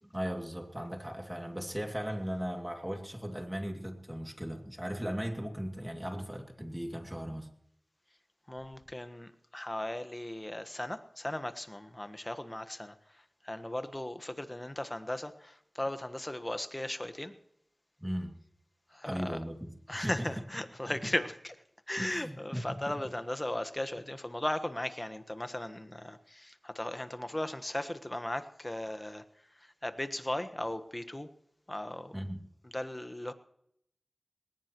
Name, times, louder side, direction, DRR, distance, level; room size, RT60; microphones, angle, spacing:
voice 1, 0.0-7.5 18.0-18.3 19.0-20.3 20.9-21.0 22.0-22.8 32.1-32.4, equal, 10° right, 4 dB, 2.5 m, -37 dB
voice 2, 8.5-12.9 13.4-17.3 18.9-19.4 19.9-21.5 21.9-29.2 29.6-31.3 31.7-32.1 32.6-33.3, left 1 dB, 25° left, 10 dB, 1.3 m, -37 dB
20.0 x 18.5 x 3.1 m, 0.73 s
wide cardioid pair, 45°, 0 cm